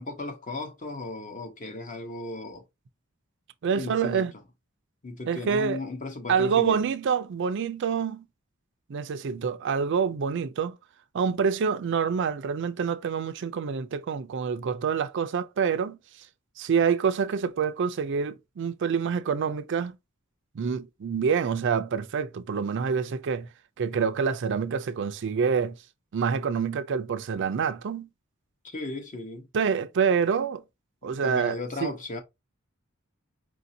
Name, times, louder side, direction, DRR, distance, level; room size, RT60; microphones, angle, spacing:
voice 1, 0.0-2.6 3.7-4.3 5.0-6.8 28.6-29.5 31.0-32.2, left 2 dB, 40° left, 0.9 m, -36 dB
voice 2, 3.6-4.3 5.3-5.8 6.3-8.3 8.9-10.8 11.1-16.3 16.6-19.9 20.5-23.5 23.8-25.8 26.1-28.1 29.5-30.6 31.0-31.9, right 6 dB, 60° right, 0.4 m, -27 dB
4.9 x 2.6 x 2.7 m
head